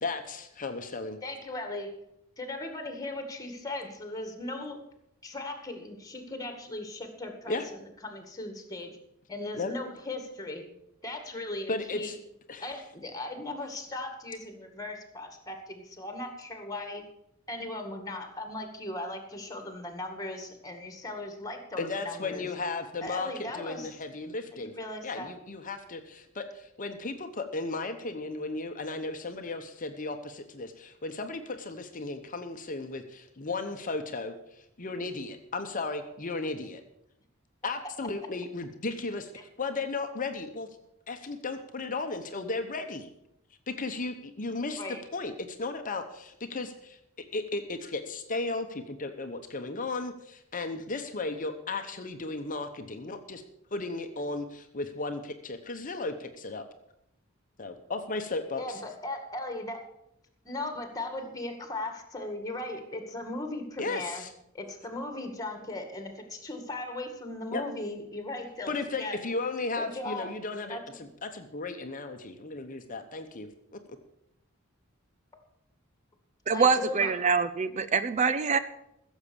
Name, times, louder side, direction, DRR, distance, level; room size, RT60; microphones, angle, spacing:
voice 1, 0.0-1.2 7.5-7.6 9.6-9.7 11.7-12.2 12.5-12.7 21.8-24.7 25.0-36.8 37.6-39.3 39.6-40.7 41.1-43.1 43.7-44.8 45.1-47.0 47.3-53.4 53.7-56.6 57.6-58.8 63.8-64.3 67.5-67.6 68.7-73.8, left 3 dB, 40° left, 7 dB, 0.9 m, -35 dB
voice 2, 1.2-1.9 2.4-4.8 5.2-9.0 9.3-10.6 11.0-12.2 12.6-17.1 17.5-22.5 23.0-24.0 24.5-25.3 44.8-45.0 58.6-59.9 60.4-64.2 64.5-69.2 69.8-70.3 70.7-71.0 76.5-77.1, left 2 dB, 15° left, 6 dB, 2.1 m, -38 dB
voice 3, 76.5-78.6, right 5 dB, 35° right, 12 dB, 0.5 m, -25 dB
15.0 x 7.3 x 7.0 m, 0.82 s
head